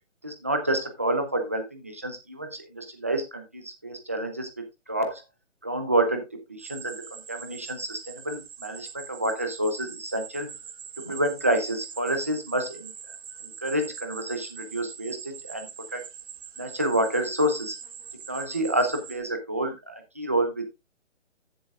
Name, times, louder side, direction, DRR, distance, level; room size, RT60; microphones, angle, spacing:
voice 1, 0.2-5.2 5.6-10.5 11.1-12.9 13.4-16.0 16.6-17.8 18.3-20.7, right 1 dB, 10° right, 6 dB, 0.5 m, -28 dB
sound 1, 6.6-19.2, right 7 dB, 40° right, 2.0 m, -43 dB
14.0 x 7.5 x 2.3 m, 0.24 s
hypercardioid pair, 165°, 37 cm